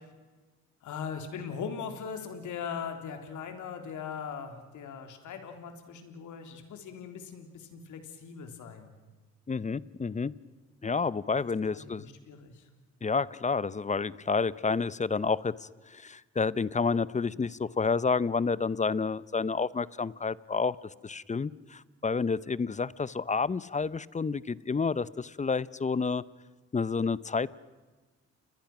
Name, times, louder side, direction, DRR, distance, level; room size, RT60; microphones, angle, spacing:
voice 1, 0.8-8.9 11.4-12.7, left 6 dB, 75° left, 7 dB, 3.5 m, -40 dB
voice 2, 9.5-10.3 10.8-12.1 13.0-20.8 21.0-26.2 26.7-27.5, left 4 dB, 25° left, 20 dB, 0.7 m, -29 dB
29.5 x 21.0 x 6.1 m, 1.3 s
supercardioid pair, 70°, 31 cm